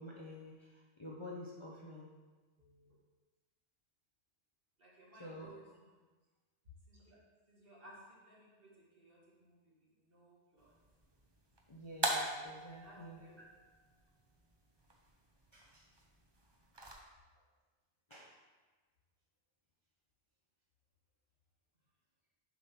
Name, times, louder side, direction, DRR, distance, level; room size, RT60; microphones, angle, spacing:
voice 1, 0.0-2.1 5.2-5.6 11.7-13.5 15.5-15.9 18.1-18.3, left 1 dB, 30° left, -4 dB, 0.7 m, -49 dB
voice 2, 2.6-3.0 4.8-6.0 6.9-7.2 7.5-10.7 12.8-13.4, right 1 dB, 50° right, -5 dB, 1.9 m, -60 dB
sound 1, 10.6-16.9, right 1 dB, 25° right, 0.7 m, -43 dB
7.1 x 3.7 x 5.8 m, 1.3 s
omnidirectional pair, 1.2 m